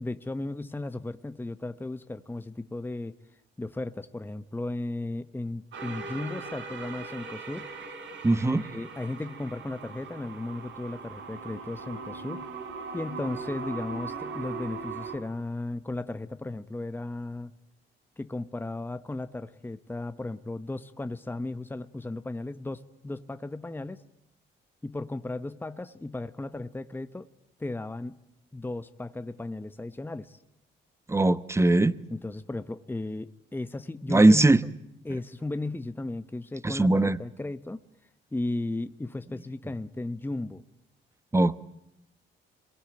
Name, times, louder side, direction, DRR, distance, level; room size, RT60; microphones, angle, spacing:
voice 1, 0.0-3.2 3.6-7.7 8.6-12.5 12.9-17.5 18.2-24.0 24.8-27.3 27.6-28.2 28.5-30.4 32.1-34.5 35.0-37.8 38.3-40.6, left 2 dB, 10° left, 1.0 m, -35 dB
sound 1, 5.7-15.2, right 4 dB, 70° right, 4.8 m, -39 dB
voice 2, 8.2-8.6 31.1-31.9 34.1-34.6 36.6-37.2 41.3-41.6, right 2 dB, 15° right, 1.0 m, -20 dB
26.0 x 22.0 x 8.8 m
cardioid pair, 90°, 20 cm